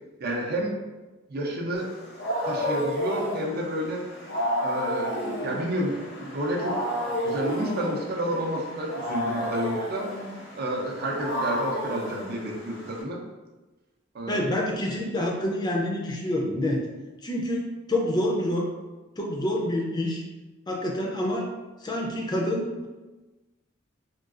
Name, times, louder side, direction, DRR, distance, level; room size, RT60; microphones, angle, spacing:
voice 1, 0.2-0.7 1.3-1.9 2.4-4.1 4.6-6.8 7.1-10.1 10.6-13.2 14.1-14.4, right 1 dB, 50° right, 0 dB, 0.5 m, -30 dB
Wild animals, 1.8-13.0, equal, 60° left, 0.7 m, -31 dB
voice 2, 14.3-16.8 17.2-18.7 19.2-20.2 20.7-21.5 21.8-22.9, left 1 dB, 20° left, 0 dB, 0.4 m, -27 dB
3.7 x 2.3 x 2.4 m, 1.2 s
head